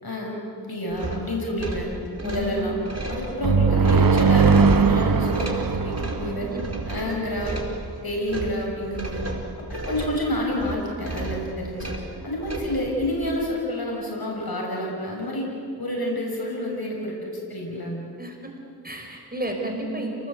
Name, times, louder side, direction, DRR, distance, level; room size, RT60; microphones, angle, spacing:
voice 1, 0.0-1.9 2.2-2.7 3.1-6.5 6.9-7.6 8.0-9.2 9.7-11.9 12.2-15.5 15.8-18.0, left 1 dB, 65° left, -2 dB, 6.4 m, -29 dB
sound 1, 0.9-13.4, right 2 dB, 40° right, 4.8 m, -34 dB
voice 2, 2.2-2.5 6.2-6.6 18.2-18.5 18.8-20.3, right 1 dB, 25° right, 1 dB, 5.2 m, -32 dB
sound 2, 3.4-7.2, right 5 dB, 60° right, 1.1 m, -20 dB
29.5 x 19.0 x 8.3 m, 2.5 s
cardioid pair, 40°, 39 cm